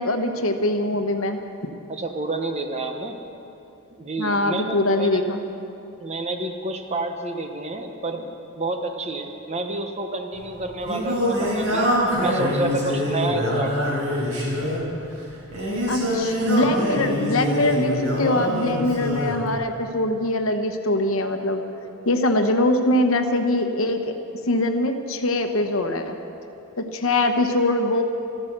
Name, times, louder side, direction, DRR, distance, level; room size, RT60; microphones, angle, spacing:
voice 1, 0.0-1.4 4.2-5.4 15.9-21.6 22.1-24.1 24.5-26.2 26.8-28.0, left 1 dB, 65° left, 6 dB, 1.1 m, -22 dB
voice 2, 1.9-3.1 3.9-5.2 6.0-11.9 12.2-14.1, right 2 dB, 30° right, 5 dB, 1.1 m, -29 dB
Singing, 10.3-19.4, equal, 80° right, 4.8 m, -24 dB
14.0 x 14.0 x 6.7 m, 2.8 s
head